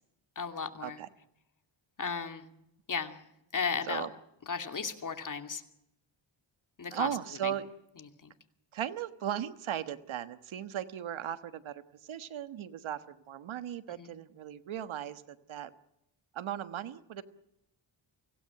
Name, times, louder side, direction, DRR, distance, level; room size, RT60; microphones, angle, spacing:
voice 1, 0.4-1.0 2.0-2.4 2.9-3.2 3.5-4.1 4.5-5.6 6.8-7.1 7.4-7.5 8.2-8.3 14.0-14.1, left 5 dB, 40° left, 7 dB, 2.6 m, -35 dB
voice 2, 6.9-7.7 8.7-15.7 16.3-17.2, right 10 dB, 80° right, 12 dB, 1.4 m, -37 dB
25.0 x 16.5 x 8.8 m, 0.84 s
cardioid pair, 90°, 47 cm